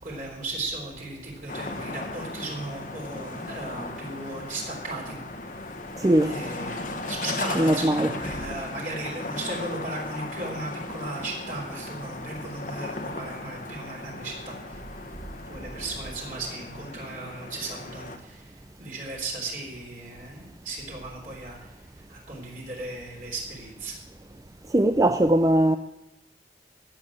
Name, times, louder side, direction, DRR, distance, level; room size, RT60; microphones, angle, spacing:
voice 1, 0.0-5.2 6.2-14.8 15.5-21.7 22.1-24.0, right 2 dB, 45° right, 3.6 m, -36 dB
sound 1, 1.5-18.2, left 2 dB, 45° left, 1.2 m, -37 dB
voice 2, 6.0-6.4 7.6-8.1 24.7-25.8, right 1 dB, 20° right, 0.4 m, -20 dB
16.5 x 7.0 x 8.6 m
head